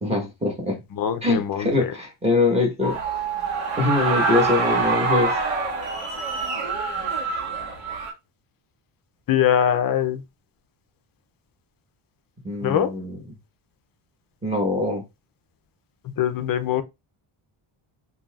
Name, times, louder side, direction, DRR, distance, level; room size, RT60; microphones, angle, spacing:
voice 1, 0.0-0.8 1.2-3.0 3.8-5.4 12.4-13.1 14.4-15.0, left 3 dB, 15° right, 1.2 m, -23 dB
voice 2, 0.9-2.0 9.3-10.2 12.6-12.9 16.0-16.8, left 9 dB, 45° left, 0.5 m, -23 dB
sound 1, 2.8-8.1, right 4 dB, 75° right, 1.4 m, -25 dB
5.4 x 2.8 x 2.3 m
cardioid pair, 170°, 49 cm